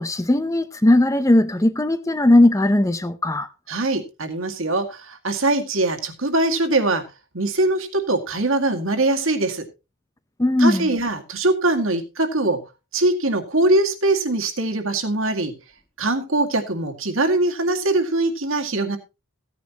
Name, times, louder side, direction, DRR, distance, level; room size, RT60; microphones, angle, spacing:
voice 1, 0.0-3.5 10.4-10.9, left 1 dB, 15° left, 0.6 m, -18 dB
voice 2, 3.7-7.0 7.3-9.7 10.6-12.6 12.9-15.5 16.0-19.0, right 2 dB, 65° right, 2.0 m, -22 dB
16.0 x 9.7 x 2.9 m
head